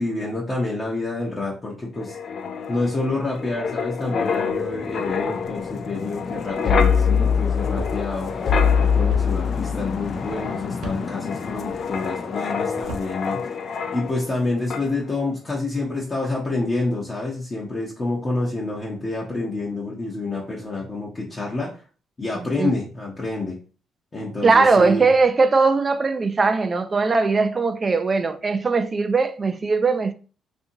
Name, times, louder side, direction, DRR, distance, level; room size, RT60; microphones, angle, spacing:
voice 1, 0.0-2.2 2.7-8.3 8.8-13.4 13.9-21.7 22.2-23.6 24.1-25.1, left 2 dB, 30° left, 0.7 m, -28 dB
Wind, 2.0-14.4 14.7-14.9, left 6 dB, 55° left, 0.3 m, -24 dB
sound 1, 7.7-8.0 9.1-9.3 10.8-11.0 12.8-13.1, right 2 dB, 80° right, 0.6 m, -34 dB
voice 2, 24.4-30.1, right 4 dB, 30° right, 0.3 m, -19 dB
2.7 x 2.6 x 2.7 m
cardioid pair, 90°, 0 cm